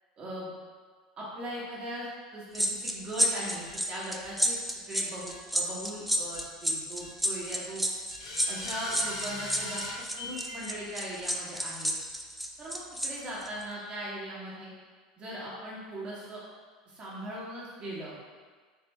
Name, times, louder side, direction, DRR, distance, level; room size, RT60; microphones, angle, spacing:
voice 1, 0.2-0.5 1.2-4.6 4.9-7.8 8.5-9.9 10.2-11.9 12.6-14.7 15.2-16.4 16.9-18.1, right 1 dB, 35° right, -6 dB, 1.4 m, -39 dB
sound 1, 2.5-13.1 13.4-13.6, equal, ahead, 0.4 m, -30 dB
sound 2, 3.7-3.8 4.2-4.3 5.3-5.4 6.3-6.5 7.0-7.1 8.1-10.7, left 1 dB, 80° left, 0.8 m, -39 dB
3.9 x 3.5 x 3.2 m, 1.5 s
figure-of-eight pair, 80°, 3 cm